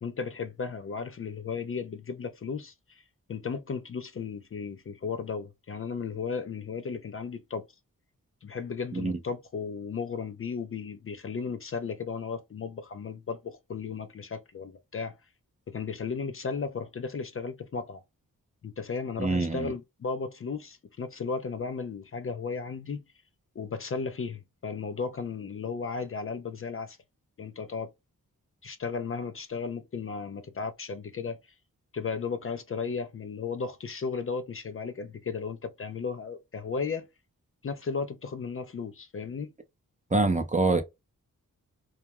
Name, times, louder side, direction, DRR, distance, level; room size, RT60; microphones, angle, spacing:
voice 1, 0.0-3.0 3.3-7.7 8.4-15.2 15.7-18.0 18.6-23.0 23.6-27.0 27.4-27.9 28.6-31.4 31.9-37.1 37.6-39.5, left 5 dB, 40° left, 0.4 m, -35 dB
voice 2, 19.2-19.7 40.1-40.8, right 3 dB, 20° right, 0.5 m, -25 dB
2.3 x 2.1 x 2.8 m
wide cardioid pair, 75°, 34 cm